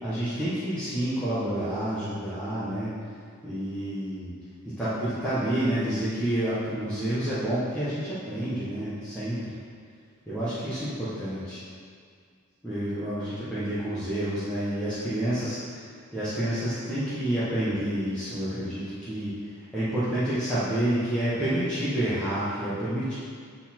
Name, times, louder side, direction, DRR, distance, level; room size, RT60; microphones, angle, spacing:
voice 1, 0.0-2.9 3.4-4.3 4.6-9.6 10.3-11.6 12.6-15.8 16.1-23.1, right 1 dB, 5° left, -13 dB, 1.1 m, -29 dB
8.1 x 4.1 x 4.4 m, 2.1 s
head